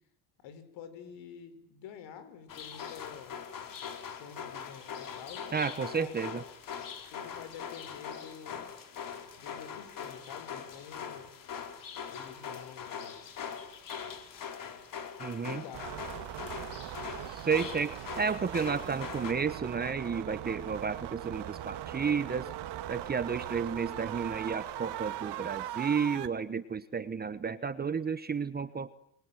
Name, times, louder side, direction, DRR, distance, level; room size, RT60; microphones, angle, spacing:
voice 1, 0.4-3.4 4.1-5.5 5.9-6.2 7.1-8.7 9.4-11.3 12.1-13.3 15.4-16.8, left 8 dB, 60° left, 11 dB, 6.2 m, -48 dB
sound 1, 2.5-19.3, left 7 dB, 40° left, 4.2 m, -42 dB
voice 2, 5.5-6.4 15.2-15.6 17.3-22.5 22.9-28.9, right 6 dB, 20° right, 14 dB, 1.1 m, -32 dB
sound 2, 15.7-26.3, right 13 dB, 55° right, 2.3 m, -40 dB
27.5 x 23.5 x 9.3 m, 0.75 s
cardioid pair, 145°, 48 cm